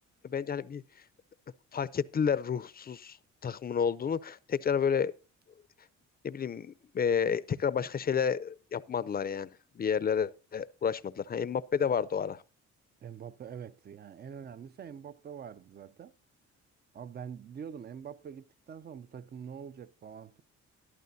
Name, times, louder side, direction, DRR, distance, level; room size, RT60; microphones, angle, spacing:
voice 1, 0.2-0.8 1.7-3.2 3.4-5.1 6.2-9.5 9.8-12.4, left 7 dB, 30° left, 0.6 m, -30 dB
voice 2, 13.0-16.1 16.9-20.4, right 7 dB, 35° right, 0.5 m, -45 dB
13.5 x 11.5 x 2.7 m
cardioid pair, 90°, 30 cm